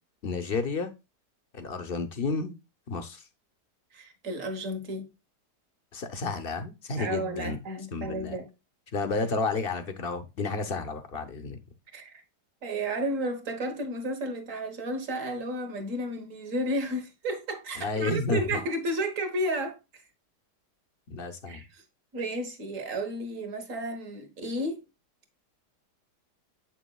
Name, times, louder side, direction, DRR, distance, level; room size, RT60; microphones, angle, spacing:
voice 1, 0.2-0.9 1.5-2.5 2.9-3.2 5.9-7.6 7.9-8.4 8.9-11.6 17.8-18.6 21.1-21.6, left 3 dB, 50° left, 0.7 m, -31 dB
voice 2, 3.9-5.1 7.0-8.5 9.2-9.3 11.9-12.2 12.6-20.0 21.5-21.8 22.1-24.8, right 1 dB, 50° right, 1.6 m, -32 dB
7.8 x 6.0 x 2.3 m
omnidirectional pair, 1.8 m